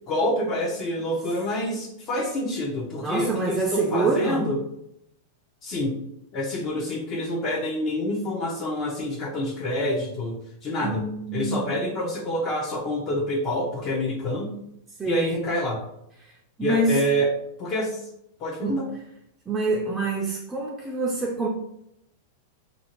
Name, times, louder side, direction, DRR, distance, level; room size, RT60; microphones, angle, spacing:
voice 1, 0.1-4.6 5.6-6.0 6.3-11.0 11.3-14.5 15.0-15.8 16.6-18.1 18.4-18.9, left 1 dB, 35° left, 0.6 m, -27 dB
voice 2, 3.0-4.5 10.8-11.7 15.0-15.3 16.2-16.3 16.6-17.0 18.6-18.8 19.5-21.5, right 3 dB, 15° right, 0.5 m, -26 dB
2.7 x 2.6 x 2.9 m
hypercardioid pair, 125°, 0 cm